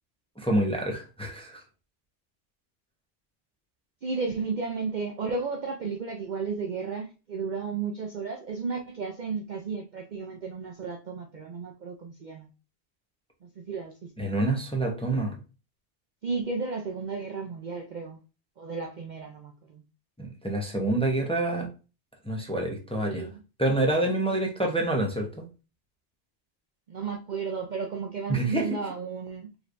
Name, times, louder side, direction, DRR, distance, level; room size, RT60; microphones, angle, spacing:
voice 1, 0.4-1.6 14.2-15.4 20.2-21.7 22.2-23.3 23.6-25.5 28.3-28.8, right 1 dB, 5° left, 0.7 m, -27 dB
voice 2, 4.0-12.5 13.4-14.3 16.2-18.2 18.6-19.8 23.0-23.4 26.9-29.5, right 5 dB, 55° right, 0.6 m, -33 dB
5.0 x 3.2 x 2.5 m
omnidirectional pair, 1.2 m